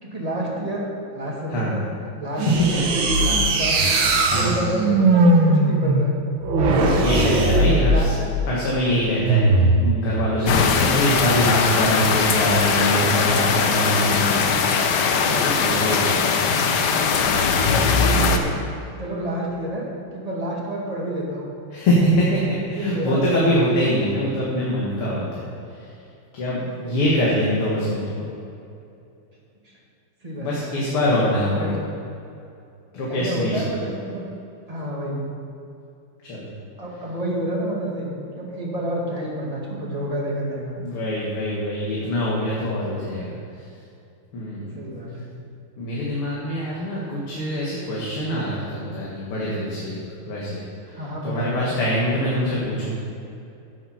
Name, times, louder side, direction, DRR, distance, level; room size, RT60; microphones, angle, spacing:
voice 1, 0.0-1.8 2.2-2.5 2.8-3.9 4.3-5.2 5.5-6.2 6.6-8.3 17.1-18.6 18.9-19.8 20.1-21.5 22.6-23.3 26.8-26.9 29.6-29.7 30.2-30.7 31.6-31.8 33.1-34.2 34.7-35.3 36.8-38.1 38.3-40.8 44.7-45.3 50.9-51.6 52.3-52.5, right 1 dB, 20° right, -3 dB, 2.0 m, -29 dB
sound 1, 2.4-8.3 9.2-9.9, right 2 dB, 70° right, 1.8 m, -19 dB
voice 2, 4.3-4.7 7.0-8.1 8.4-14.9 15.3-16.8 21.7-25.5 25.7-25.9 26.3-28.3 30.4-31.8 32.9-33.6 36.2-36.5 40.8-43.4 44.3-44.7 45.8-50.0 50.3-50.6 51.2-52.9, equal, 85° left, -6 dB, 2.7 m, -24 dB
sound 2, 10.5-18.4, left 5 dB, 60° left, 1.2 m, -20 dB
11.0 x 8.2 x 5.8 m, 2.7 s
omnidirectional pair, 2.4 m